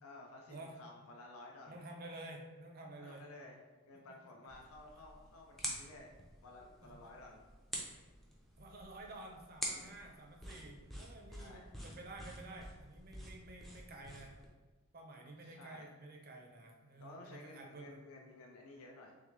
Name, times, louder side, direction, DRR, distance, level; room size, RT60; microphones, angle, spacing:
voice 1, 0.0-1.8 2.9-3.6 3.8-6.1 6.4-7.4 9.7-10.0 11.4-11.7 15.4-15.9 17.0-19.1, left 2 dB, 70° left, 0 dB, 0.5 m, -54 dB
voice 2, 1.7-3.2 8.6-14.4 14.9-18.0, right 2 dB, 40° right, 1 dB, 0.6 m, -51 dB
sound 1, 4.5-14.5, equal, ahead, 0.5 m, -48 dB
3.7 x 3.2 x 3.1 m, 1.3 s
head